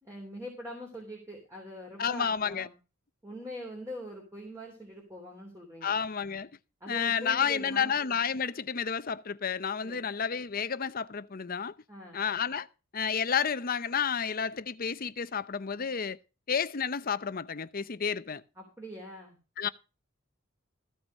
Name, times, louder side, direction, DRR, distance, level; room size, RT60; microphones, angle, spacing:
voice 1, 0.0-2.7 3.2-6.0 6.8-7.9 9.8-10.0 11.9-12.2 18.6-19.4, equal, 15° right, 3.3 m, -43 dB
voice 2, 2.0-2.7 5.8-6.5 6.9-11.7 12.1-12.7 12.9-16.2 16.5-18.4 19.6-19.7, left 7 dB, 45° left, 0.7 m, -31 dB
15.0 x 5.7 x 6.3 m
head